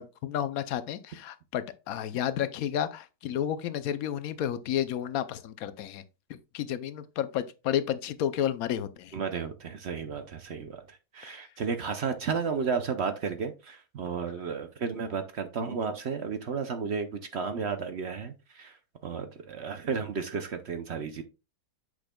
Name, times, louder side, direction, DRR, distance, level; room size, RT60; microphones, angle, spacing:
voice 1, 0.0-6.0 6.3-9.1, left 10 dB, 75° left, 1.1 m, -31 dB
voice 2, 9.1-10.8 11.1-17.1 17.3-18.7 19.0-21.2, right 5 dB, 55° right, 0.9 m, -33 dB
8.3 x 6.3 x 2.2 m
omnidirectional pair, 1.5 m